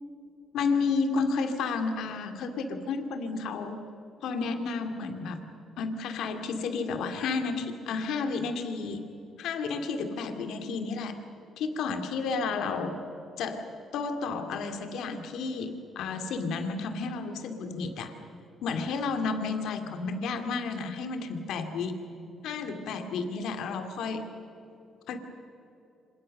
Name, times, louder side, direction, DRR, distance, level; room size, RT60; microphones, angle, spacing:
voice 1, 0.5-3.9 4.2-5.4 5.8-9.0 9.4-11.2 11.6-13.0 13.4-13.6 13.9-18.1 18.6-22.0 22.4-24.3 25.1-25.2, left 4 dB, 80° left, 7 dB, 2.6 m, -31 dB
27.0 x 26.5 x 6.6 m, 2.7 s
cardioid pair, 90°, 0 cm